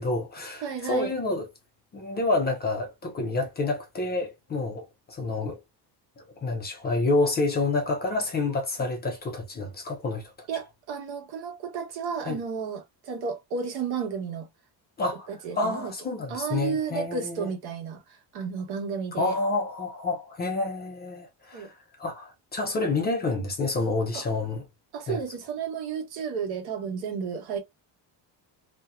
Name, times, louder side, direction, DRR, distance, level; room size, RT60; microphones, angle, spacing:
voice 1, 0.0-1.5 1.9-5.6 6.2-10.3 12.2-12.4 15.0-15.3 15.5-17.5 19.2-21.7 22.0-24.6 25.1-25.2, left 3 dB, 25° left, 0.4 m, -28 dB
voice 2, 0.6-1.1 10.5-14.5 15.3-15.9 16.3-19.4 21.5-21.7 24.1-24.2 24.9-27.6, right 6 dB, 65° right, 1.0 m, -32 dB
2.7 x 2.1 x 2.3 m
cardioid pair, 160°, 42 cm